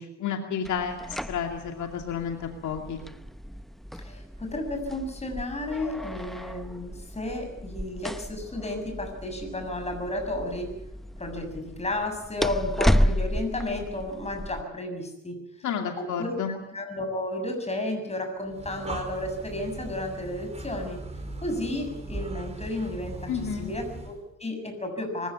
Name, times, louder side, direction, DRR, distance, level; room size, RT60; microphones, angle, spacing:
voice 1, 0.0-3.0 15.6-16.6 23.3-23.7, left 7 dB, 75° left, 4 dB, 2.5 m, -31 dB
sound 1, 0.6-14.6, equal, ahead, 0.8 m, -32 dB
voice 2, 4.0-10.7 11.2-15.4 16.0-16.4 16.7-21.0 21.4-25.3, left 1 dB, 20° left, 5 dB, 7.2 m, -32 dB
Breathing, 18.4-24.2, right 2 dB, 20° right, 4.3 m, -39 dB
24.0 x 15.5 x 8.4 m, 0.88 s
cardioid pair, 90°, 30 cm